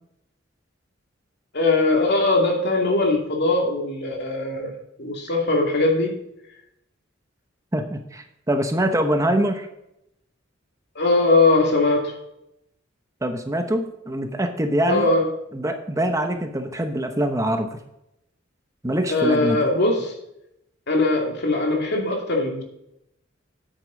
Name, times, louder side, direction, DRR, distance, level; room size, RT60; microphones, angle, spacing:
voice 1, 1.5-4.7 5.0-6.2 10.9-12.2 14.8-15.3 19.1-20.1 20.9-22.6, left 2 dB, 60° left, 1 dB, 2.5 m, -20 dB
voice 2, 7.7-9.7 13.2-15.1 15.5-17.7 18.8-19.6, right 1 dB, 15° right, 6 dB, 0.9 m, -24 dB
9.6 x 8.3 x 3.9 m, 0.81 s
head